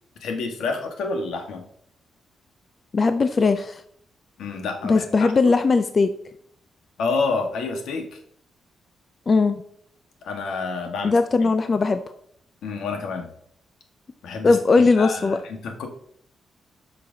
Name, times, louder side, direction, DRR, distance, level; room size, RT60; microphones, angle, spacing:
voice 1, 0.2-1.6 4.4-5.3 7.0-8.2 10.2-11.5 12.6-13.3 14.2-14.6 15.0-15.9, left 4 dB, 85° left, 4 dB, 1.3 m, -28 dB
voice 2, 2.9-3.8 4.8-6.1 9.3-9.6 11.0-12.0 14.4-15.4, left 4 dB, 30° left, 9 dB, 0.4 m, -19 dB
8.5 x 5.9 x 2.7 m, 0.66 s
cardioid pair, 135°, 0 cm